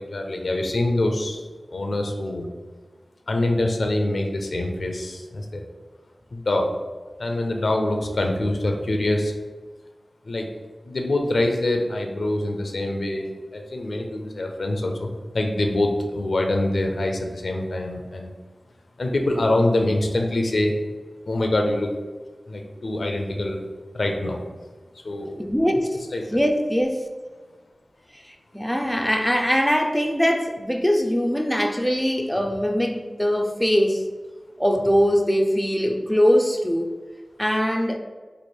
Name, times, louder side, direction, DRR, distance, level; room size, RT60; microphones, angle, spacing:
voice 1, 0.0-1.4 1.7-2.5 3.3-5.6 6.3-6.7 7.2-9.3 10.3-10.5 10.8-15.1 15.3-18.3 19.0-20.7 21.3-21.9 22.5-23.7 23.9-24.4 25.0-25.4 26.1-26.2, left 1 dB, 75° left, 3 dB, 0.5 m, -24 dB
voice 2, 25.4-26.0 26.3-27.1 28.1-34.1 34.6-36.9 37.4-38.0, equal, 5° left, 3 dB, 0.4 m, -22 dB
3.1 x 2.5 x 4.3 m, 1.3 s
wide cardioid pair, 55°, 0 cm